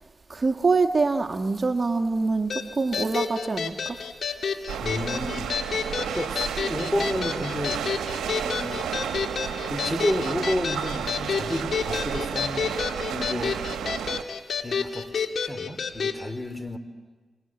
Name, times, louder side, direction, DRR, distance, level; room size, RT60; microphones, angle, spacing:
voice 1, 0.3-4.0, right 3 dB, 45° right, 6 dB, 1.6 m, -25 dB
sound 1, 2.5-16.2, left 6 dB, 70° left, 2.0 m, -30 dB
sound 2, 4.7-14.2, right 8 dB, 90° right, 1.1 m, -32 dB
voice 2, 4.8-5.5 6.2-7.8 8.4-9.2 9.7-12.8 13.1-13.6 14.6-16.8, left 1 dB, 15° left, 10 dB, 3.7 m, -31 dB
26.5 x 25.5 x 7.9 m, 1.4 s
supercardioid pair, 40°, 0 cm